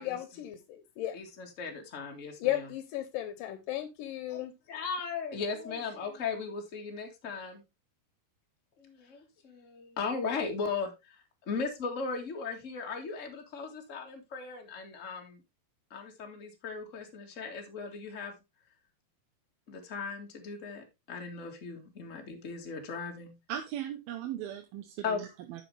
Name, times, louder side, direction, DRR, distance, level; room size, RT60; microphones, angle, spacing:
voice 1, 0.0-1.2 2.4-4.5, left 14 dB, 75° left, 11 dB, 2.4 m, -35 dB
voice 2, 1.1-2.6 4.3-4.4 4.7-7.6 8.8-11.1 11.5-15.4 15.9-18.3 19.7-23.3 25.0-25.2, left 5 dB, 30° left, 2 dB, 1.5 m, -37 dB
voice 3, 23.5-25.6, right 11 dB, 90° right, 4 dB, 2.8 m, -38 dB
10.0 x 7.0 x 3.3 m, 0.23 s
omnidirectional pair, 4.1 m